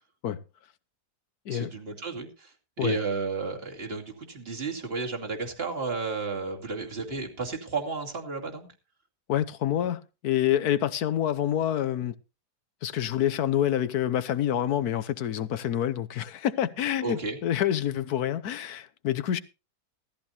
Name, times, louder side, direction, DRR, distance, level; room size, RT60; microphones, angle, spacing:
voice 1, 1.5-8.7 17.0-17.4, right 4 dB, 35° right, 2.7 m, -33 dB
voice 2, 9.3-12.1 12.8-19.4, left 11 dB, 70° left, 1.4 m, -27 dB
16.5 x 14.0 x 2.8 m
omnidirectional pair, 1.8 m